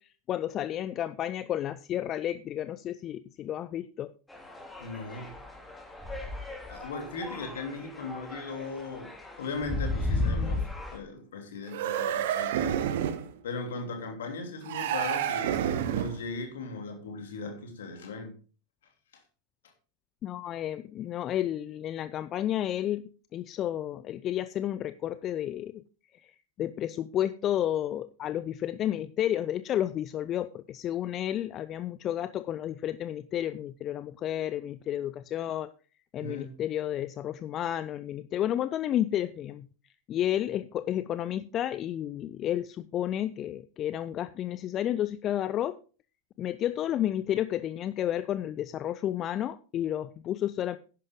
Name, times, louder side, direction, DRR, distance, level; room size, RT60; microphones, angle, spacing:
voice 1, 0.0-4.1 20.2-23.0 23.3-25.8 26.1-35.7 36.1-39.7 40.1-45.8 46.4-50.8, left 11 dB, 30° left, 0.5 m, -31 dB
sound 1, 4.3-11.0, left 2 dB, 5° left, 3.1 m, -35 dB
voice 2, 4.8-5.3 6.7-9.1 9.4-13.0 13.4-15.7 15.9-18.3 19.1-19.2 36.2-36.5, left 3 dB, 60° left, 3.3 m, -38 dB
sound 2, 11.7-13.3 14.7-16.3, right 10 dB, 55° right, 1.0 m, -29 dB
11.0 x 10.5 x 3.8 m
figure-of-eight pair, 90°, 0 cm